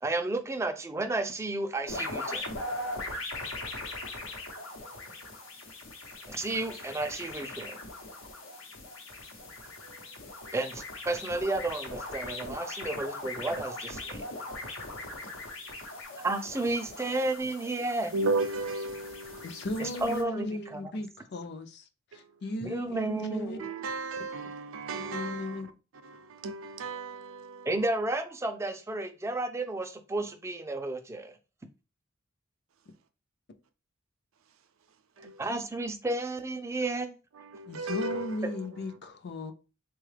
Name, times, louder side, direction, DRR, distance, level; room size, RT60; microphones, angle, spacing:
voice 1, 0.0-2.5 6.3-7.7 10.5-14.2 16.2-18.1 19.8-20.9 22.6-23.7 27.7-31.3 35.4-37.1, right 2 dB, 15° right, 0.4 m, -32 dB
sound 1, 1.9-20.2, left 2 dB, 85° left, 0.9 m, -40 dB
voice 2, 4.8-5.1 9.8-10.6 12.3-12.6 14.4-14.6 14.9-15.9 18.1-20.0 22.1-22.4 22.9-23.0 23.6-25.7 26.0-27.9 35.2-35.5 36.8-36.9 37.3-39.0, right 2 dB, 85° right, 0.5 m, -36 dB
voice 3, 19.4-21.8 22.1-23.6 24.9-25.7 37.7-39.5, left 1 dB, 55° left, 0.5 m, -36 dB
3.8 x 2.3 x 3.2 m
head